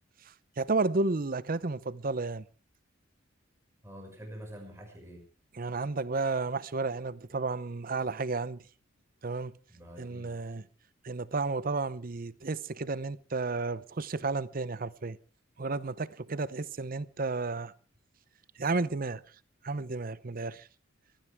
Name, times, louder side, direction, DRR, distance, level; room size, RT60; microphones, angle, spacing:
voice 1, 0.3-2.5 5.5-8.6 9.2-9.5 10.0-10.6 11.0-15.2 15.6-17.7 18.6-19.2 19.6-20.7, right 3 dB, 45° right, 0.7 m, -32 dB
voice 2, 3.8-5.3 9.7-10.4, equal, 15° right, 5.7 m, -46 dB
23.5 x 16.0 x 3.5 m
head